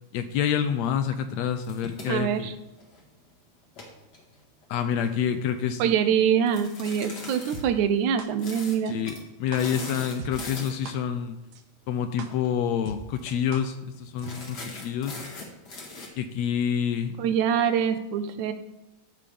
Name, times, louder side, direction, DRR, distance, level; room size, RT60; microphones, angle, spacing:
voice 1, 0.1-2.5 4.7-5.8 8.9-11.4 11.9-15.2 16.2-17.2, left 8 dB, 80° left, 9 dB, 1.6 m, -28 dB
sound 1, 1.6-3.1 3.6-5.2 6.5-7.6 8.4-8.8 9.0-9.2 9.5-10.9 12.2-12.5 12.8-12.9 13.2-13.5 14.2-16.1, left 3 dB, 45° left, 1.8 m, -41 dB
voice 2, 2.1-2.5 5.8-9.0 14.2-14.3 17.2-18.5, right 8 dB, 90° right, 9 dB, 2.1 m, -24 dB
sound 2, 7.5-7.6 8.2-8.3 8.9-9.0 9.5-9.6 10.2-10.3 10.9-11.0 11.5-11.6 12.2-12.3 12.9-13.0 13.5-13.6 14.2-14.3, right 5 dB, 75° right, 2.0 m, -39 dB
14.0 x 5.4 x 3.5 m, 1.0 s
omnidirectional pair, 3.4 m